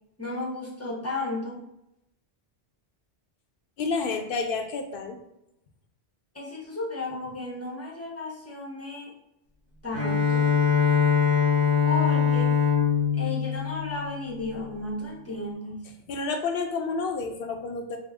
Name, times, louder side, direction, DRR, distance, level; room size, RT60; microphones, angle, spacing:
voice 1, 0.2-1.7 6.3-9.1 9.8-10.5 11.8-12.6 13.2-15.8, left 2 dB, 15° left, -3 dB, 0.5 m, -34 dB
voice 2, 3.8-5.2 16.1-18.0, left 4 dB, 65° left, 4 dB, 0.7 m, -29 dB
Bowed string instrument, 9.9-14.6, left 7 dB, 90° right, 1.4 m, -23 dB
3.6 x 2.0 x 3.4 m, 0.83 s
omnidirectional pair, 1.1 m